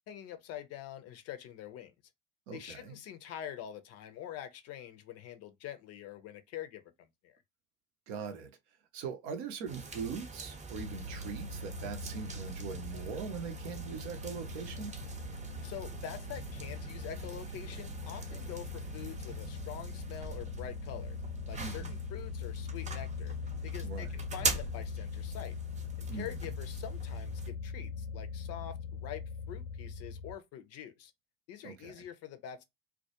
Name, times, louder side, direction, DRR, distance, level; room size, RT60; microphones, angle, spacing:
voice 1, 0.1-1.9 2.5-7.4 15.6-21.2 21.5-23.3 23.6-25.6 26.0-31.1 31.5-32.7, left 10 dB, 50° left, 0.5 m, -45 dB
voice 2, 2.5-3.0 8.1-8.5 8.9-14.9 21.6-22.0 23.8-24.2 26.1-26.5 31.6-32.0, right 6 dB, 60° right, 0.6 m, -41 dB
sound 1, 9.7-27.5, right 3 dB, 20° right, 0.8 m, -43 dB
sound 2, 10.7-30.4, left 4 dB, 85° left, 0.8 m, -41 dB
2.2 x 2.1 x 2.8 m
hypercardioid pair, 65°, 33 cm